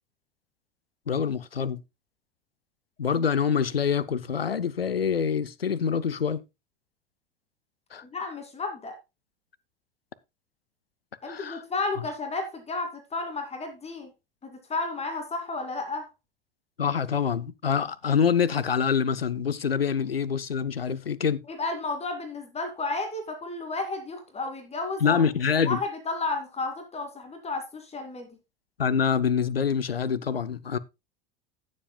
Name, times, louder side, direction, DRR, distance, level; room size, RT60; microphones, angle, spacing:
voice 1, 1.1-1.8 3.0-6.4 7.9-8.0 11.2-11.6 16.8-21.4 25.0-25.8 28.8-30.8, left 7 dB, 85° left, 0.6 m, -25 dB
voice 2, 8.0-9.0 11.2-14.1 14.4-16.1 21.5-25.2 25.7-28.4, left 3 dB, 20° left, 2.5 m, -32 dB
16.5 x 7.4 x 2.3 m
figure-of-eight pair, 75°, 29 cm